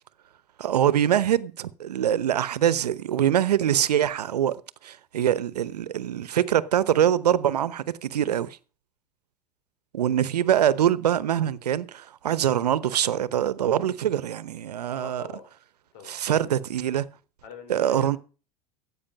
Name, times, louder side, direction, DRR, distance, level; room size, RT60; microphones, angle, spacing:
voice 1, 0.6-4.6 4.8-8.6 9.9-15.2 16.1-17.0 17.7-18.2, right 10 dB, 90° right, 1.0 m, -24 dB
voice 2, 14.9-15.5 15.9-16.2 17.4-18.2, left 7 dB, 65° left, 4.0 m, -43 dB
14.0 x 8.7 x 5.3 m
hypercardioid pair, 95°, 20 cm